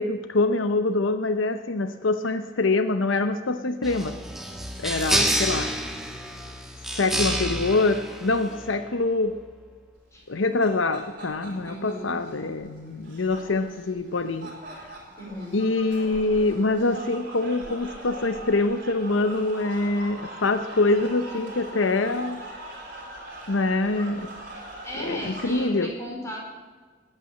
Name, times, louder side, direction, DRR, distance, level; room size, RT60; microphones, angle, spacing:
voice 1, 0.0-4.2 4.8-5.7 7.0-9.3 10.3-14.5 15.5-22.4 23.5-24.3 25.0-25.9, left 2 dB, 85° left, 10 dB, 0.8 m, -25 dB
sound 1, 3.8-8.9, right 1 dB, ahead, 1.5 m, -28 dB
sound 2, 10.2-25.7, right 1 dB, 45° right, 3.8 m, -42 dB
voice 2, 11.6-12.2 15.2-15.6 24.8-26.4, left 1 dB, 15° left, -2 dB, 4.5 m, -36 dB
19.5 x 9.0 x 7.6 m, 1.4 s
head